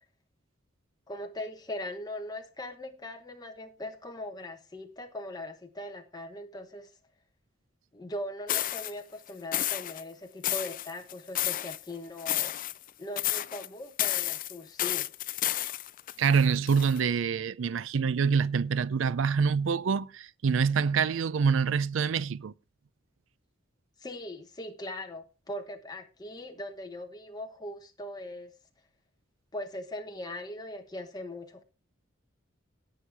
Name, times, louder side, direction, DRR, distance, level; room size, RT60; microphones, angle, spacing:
voice 1, 1.1-6.9 7.9-12.6 13.0-15.1 24.0-28.5 29.5-31.6, left 1 dB, 20° left, 1.1 m, -40 dB
sound 1, 8.5-8.9 9.5-10.0 10.4-11.8 12.2-12.9 13.2-13.7 14.0-17.0, left 14 dB, 45° left, 0.4 m, -31 dB
voice 2, 16.2-22.5, right 6 dB, 70° right, 0.4 m, -26 dB
18.0 x 6.4 x 3.4 m
head